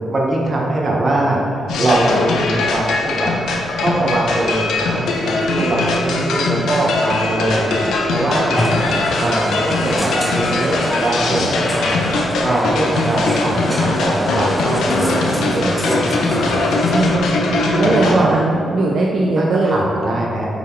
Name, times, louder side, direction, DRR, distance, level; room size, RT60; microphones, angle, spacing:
voice 1, 0.1-3.3 3.8-12.1 12.4-16.6 17.5-18.3 19.3-20.5, right 1 dB, 40° right, -3 dB, 1.3 m, -21 dB
sound 1, 1.7-18.2, left 3 dB, 90° left, 0.8 m, -21 dB
voice 2, 5.6-6.4 15.6-16.1 16.9-19.8, right 2 dB, 65° right, -2 dB, 0.6 m, -21 dB
sound 2, 8.6-17.2, equal, 5° left, 0.8 m, -26 dB
7.4 x 4.0 x 4.6 m, 2.7 s
cardioid pair, 90°, 0 cm